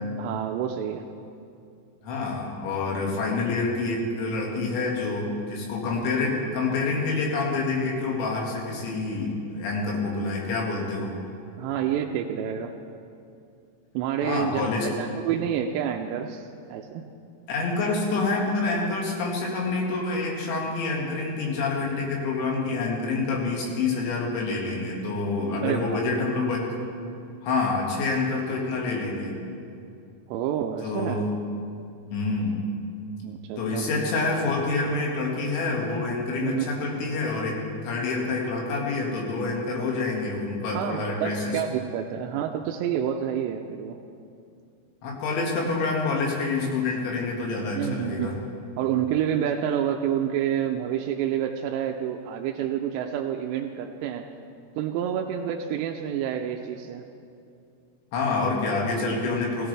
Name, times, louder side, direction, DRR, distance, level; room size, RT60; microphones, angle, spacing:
voice 1, 0.2-1.1 11.6-12.7 13.9-17.0 25.6-26.0 30.3-31.2 33.2-33.9 36.4-36.9 40.7-44.0 47.8-48.3 48.8-54.3 54.8-57.0, right 9 dB, 85° right, 3 dB, 2.7 m, -28 dB
voice 2, 2.0-11.2 14.2-14.9 17.5-26.7 27.4-29.4 30.8-31.3 32.1-32.6 33.6-41.5 45.0-48.3 58.1-59.7, left 3 dB, 80° left, -2 dB, 4.3 m, -27 dB
17.5 x 16.0 x 3.3 m, 2.5 s
omnidirectional pair, 5.2 m